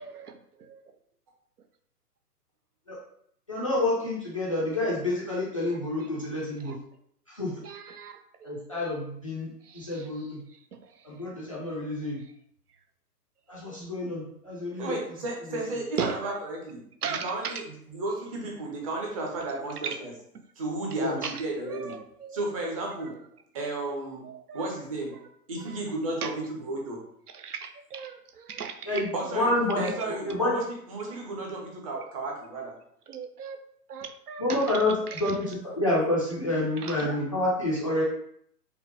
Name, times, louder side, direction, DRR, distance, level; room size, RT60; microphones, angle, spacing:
voice 1, 3.5-6.7 7.4-7.5 8.4-9.5 9.7-10.4 11.0-12.2 13.5-14.9 21.0-21.2 28.8-29.9 30.3-30.5 34.4-38.0, left 2 dB, 25° left, -7 dB, 0.4 m, -28 dB
voice 2, 7.6-8.1 8.5-8.6 16.0-16.1 17.0-17.5 22.2-22.4 24.5-24.6 27.4-28.2 28.5-28.7 33.1-33.6 33.9-34.4 36.8-37.1, right 7 dB, 70° right, 8 dB, 0.6 m, -35 dB
voice 3, 14.8-20.2 20.6-22.0 22.3-23.1 23.5-24.2 24.5-25.1 25.5-27.0 29.1-29.5 29.8-32.7, right 2 dB, 20° right, -1 dB, 0.6 m, -33 dB
4.9 x 2.1 x 2.9 m, 0.68 s
figure-of-eight pair, 125°, 48 cm